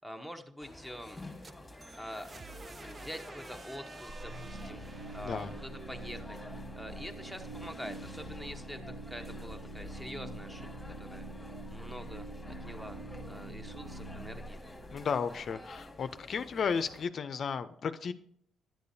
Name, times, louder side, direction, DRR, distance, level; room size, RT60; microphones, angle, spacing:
voice 1, 0.0-1.2 2.0-2.3 2.9-4.8 5.1-6.4 6.7-8.8 9.1-10.7 11.1-11.2 11.7-12.3 12.6-13.0 13.3-14.6, equal, 5° right, 8 dB, 0.8 m, -45 dB
sound 1, 0.6-17.1, left 1 dB, 10° left, 1.4 m, -50 dB
sound 2, 1.2-7.0, right 3 dB, 30° right, 0.4 m, -52 dB
sound 3, 4.1-15.8, right 1 dB, 80° right, 1.2 m, -45 dB
voice 2, 5.2-5.6 14.9-18.1, left 6 dB, 55° left, 11 dB, 0.4 m, -34 dB
10.5 x 6.7 x 2.7 m, 0.65 s
cardioid pair, 90°, 0 cm